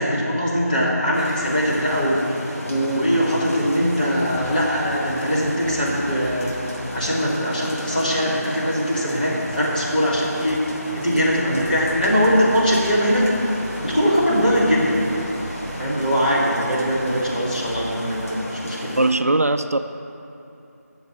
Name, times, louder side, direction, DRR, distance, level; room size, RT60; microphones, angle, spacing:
voice 1, 0.0-13.3 13.8-15.2 15.7-19.0, equal, 30° left, -8 dB, 3.0 m, -21 dB
sound 1, 1.1-19.1, equal, 60° left, 3.1 m, -34 dB
sound 2, 1.4-18.3, equal, ahead, 0.7 m, -39 dB
voice 2, 19.0-19.8, right 2 dB, 60° right, 9 dB, 0.5 m, -19 dB
9.4 x 7.3 x 8.8 m, 2.8 s
figure-of-eight pair, 170°, 9 cm